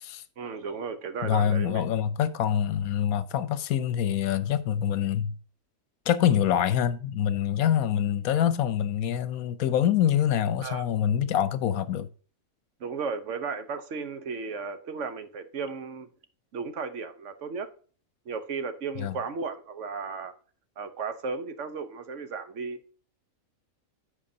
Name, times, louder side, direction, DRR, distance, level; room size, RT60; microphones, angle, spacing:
voice 1, 0.4-1.9 10.6-10.8 12.8-16.1 16.5-17.7 18.3-20.3 20.8-22.8, right 5 dB, 60° right, 1.1 m, -35 dB
voice 2, 1.2-5.4 6.1-12.1 19.0-19.2, left 9 dB, 80° left, 1.1 m, -25 dB
14.0 x 5.1 x 2.7 m
omnidirectional pair, 1.5 m